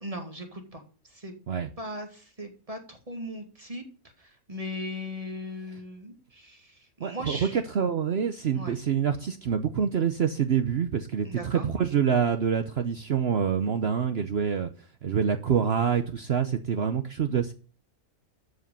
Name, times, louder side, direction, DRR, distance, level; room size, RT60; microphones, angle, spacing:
voice 1, 0.0-1.3 1.8-3.8 4.2-7.6 8.5-8.8 11.2-11.7, left 1 dB, 25° right, 1.9 m, -38 dB
voice 2, 7.0-14.7 15.0-17.5, right 7 dB, 55° right, 0.9 m, -26 dB
13.0 x 5.2 x 6.7 m
omnidirectional pair, 1.5 m